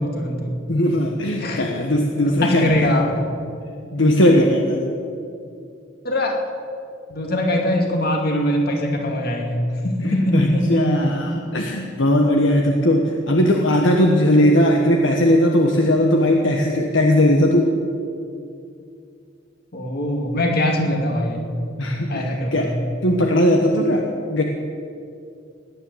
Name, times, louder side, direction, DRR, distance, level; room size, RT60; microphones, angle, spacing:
voice 1, 0.0-0.6 1.4-1.7 2.4-3.3 6.0-6.4 7.1-11.0 19.7-21.5 22.1-22.8, left 1 dB, 50° left, 2 dB, 2.4 m, -22 dB
voice 2, 0.7-2.7 3.9-4.9 10.0-17.7 21.8-22.7 23.0-24.4, left 1 dB, 70° left, 2 dB, 1.3 m, -18 dB
18.0 x 10.0 x 8.1 m, 2.5 s
head